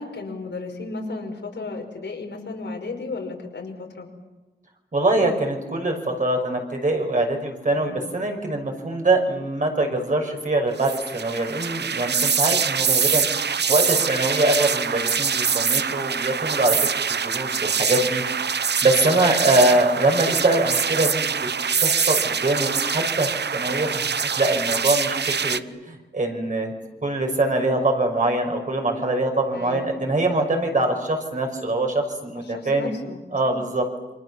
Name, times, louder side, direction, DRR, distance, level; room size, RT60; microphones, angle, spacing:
voice 1, 0.0-4.1 7.7-8.1 29.5-30.0 32.4-33.5, left 3 dB, 85° left, 2 dB, 5.4 m, -34 dB
voice 2, 4.9-16.8 17.2-18.2 18.5-21.4 21.8-25.6 25.9-26.7 27.0-32.9 33.3-33.8, right 2 dB, 45° right, 3 dB, 5.7 m, -23 dB
sound 1, 10.8-25.6, right 6 dB, 70° right, 0.8 m, -24 dB
28.0 x 25.5 x 7.1 m, 1.1 s
wide cardioid pair, 115°, 18 cm